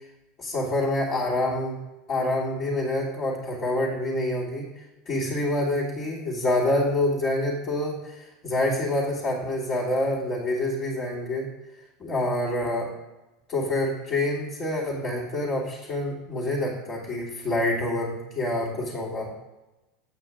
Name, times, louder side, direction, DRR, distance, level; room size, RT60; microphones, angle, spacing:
voice 1, 0.4-1.8 2.1-4.7 5.0-11.5 12.0-12.9 13.5-19.3, left 1 dB, 35° left, -10 dB, 3.2 m, -27 dB
9.3 x 8.7 x 3.7 m, 1.0 s
figure-of-eight pair, 75°, 0 cm